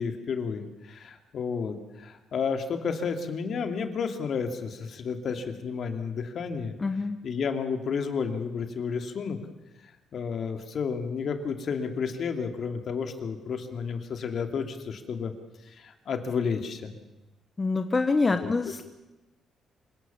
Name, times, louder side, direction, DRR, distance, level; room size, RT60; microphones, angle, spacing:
voice 1, 0.0-6.7 7.2-9.4 10.1-15.3 15.7-17.0 18.3-18.5, left 6 dB, 60° left, 6 dB, 2.6 m, -31 dB
voice 2, 6.8-7.2 17.6-18.8, left 3 dB, 30° left, 7 dB, 1.3 m, -25 dB
26.0 x 17.5 x 7.3 m, 1.0 s
cardioid pair, 90°, 0 cm